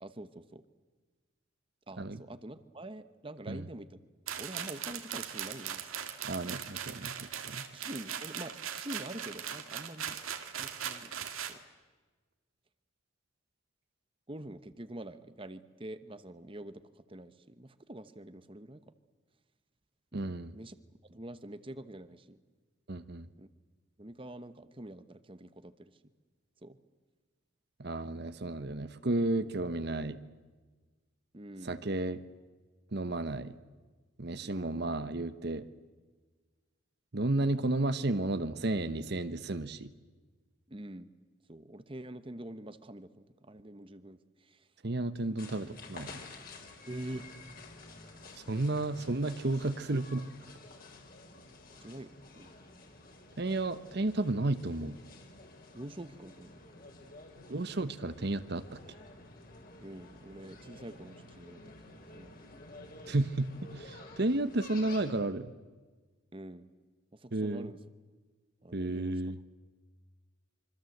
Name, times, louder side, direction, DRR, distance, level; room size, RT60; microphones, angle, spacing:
voice 1, 0.0-0.6 1.9-4.0 4.4-5.8 7.7-10.2 10.5-11.6 14.3-18.8 20.1-20.7 21.1-22.4 23.4-23.5 24.0-26.0 26.6-26.8 31.3-31.8 34.4-34.8 40.7-41.1 41.5-44.7 46.9-47.3 51.8-52.1 52.4-52.6 55.7-56.7 59.8-61.6 62.1-62.3 66.3-66.7 67.1-67.8 68.6-69.2, right 1 dB, 25° right, 11 dB, 1.0 m, -46 dB
sound 1, 4.3-11.6, right 9 dB, 85° right, 2.2 m, -39 dB
voice 2, 6.2-7.6 20.1-20.6 22.9-23.3 27.8-30.2 31.6-32.2 32.9-33.5 34.2-35.7 37.1-39.9 44.8-46.2 48.3-50.2 53.4-55.0 57.5-58.8 63.1-65.5 67.3-67.7 68.7-69.4, right 2 dB, 50° right, 12 dB, 1.0 m, -32 dB
sound 2, 45.4-65.2, left 2 dB, 45° left, 4.3 m, -51 dB
26.0 x 24.5 x 7.9 m, 1.3 s
head